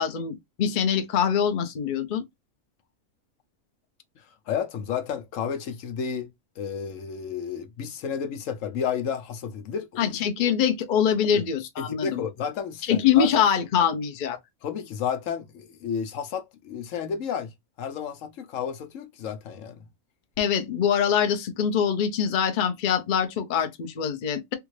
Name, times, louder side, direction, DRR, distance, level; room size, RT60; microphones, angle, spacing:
voice 1, 0.0-2.2 10.0-12.2 12.9-14.4 20.4-24.5, left 8 dB, 55° left, 0.6 m, -24 dB
voice 2, 4.5-6.3 6.6-10.0 11.2-11.4 11.8-13.4 14.6-17.5 17.8-19.8, left 7 dB, 70° left, 1.0 m, -31 dB
3.5 x 2.4 x 3.1 m
omnidirectional pair, 1.5 m